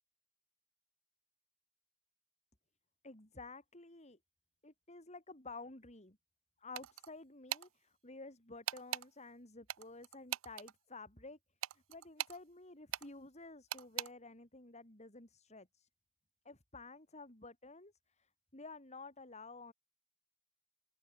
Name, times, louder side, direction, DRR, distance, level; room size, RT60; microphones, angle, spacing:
voice 1, 3.0-4.2 4.6-6.2 6.6-11.4 11.7-15.9 16.4-19.7, left 3 dB, 35° left, 5.6 m, -52 dB
sound 1, 6.8-7.1 7.5-7.7 8.7-9.1 9.7-10.7 11.6-12.4 12.9-13.1 13.7-14.1, right 12 dB, 75° right, 0.5 m, -40 dB
open air
head